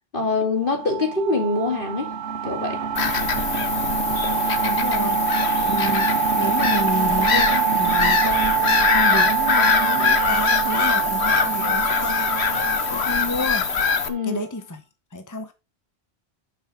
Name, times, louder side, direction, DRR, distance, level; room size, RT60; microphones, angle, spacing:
voice 1, 0.1-2.1 2.4-2.8 14.1-14.4, left 3 dB, 50° left, 2.6 m, -24 dB
sound 1, 0.6-14.1, right 7 dB, 90° right, 1.3 m, -25 dB
Bird vocalization bird call bird song / Gull seagull, 3.0-14.1, left 5 dB, 70° left, 1.3 m, -23 dB
voice 2, 4.6-5.2 5.6-12.6 12.9-13.7 14.2-14.8 15.1-15.5, left 1 dB, 20° left, 1.0 m, -30 dB
12.0 x 6.2 x 3.8 m
omnidirectional pair, 1.1 m